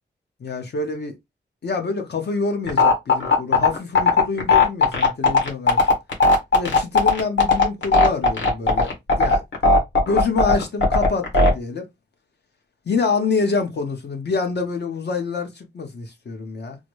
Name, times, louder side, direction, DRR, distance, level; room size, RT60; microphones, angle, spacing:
voice 1, 0.4-1.1 1.6-5.9 6.5-9.4 10.1-11.8 12.9-16.8, left 4 dB, 60° left, 0.9 m, -26 dB
sound 1, 2.7-11.5, left 3 dB, 80° left, 1.3 m, -16 dB
3.9 x 2.0 x 3.1 m
wide cardioid pair, 165°, 19 cm